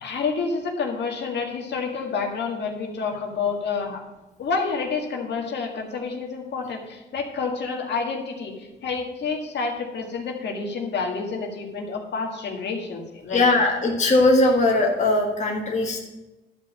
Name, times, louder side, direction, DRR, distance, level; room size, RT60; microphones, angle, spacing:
voice 1, 0.0-4.0 4.4-8.5 8.8-13.4, left 4 dB, 60° left, 2 dB, 1.9 m, -29 dB
voice 2, 13.3-16.0, left 2 dB, 35° left, 0 dB, 1.6 m, -20 dB
11.5 x 5.2 x 7.4 m, 1.1 s
cardioid pair, 90°, 20 cm